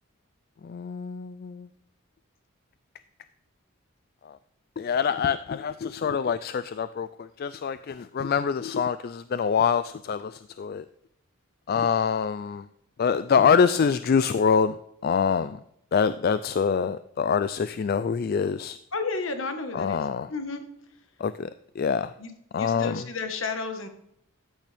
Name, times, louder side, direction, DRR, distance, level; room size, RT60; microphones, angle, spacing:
voice 1, 0.6-1.7 4.8-10.8 11.7-12.7 13.0-14.8 15.0-15.6 15.9-18.8 19.7-20.3 21.2-21.5 21.8-22.1 22.5-23.1, left 6 dB, 45° left, 13 dB, 0.3 m, -25 dB
voice 2, 18.9-20.6 22.2-22.3 22.6-23.9, left 4 dB, 65° left, 7 dB, 1.4 m, -32 dB
14.0 x 9.1 x 3.4 m, 0.76 s
head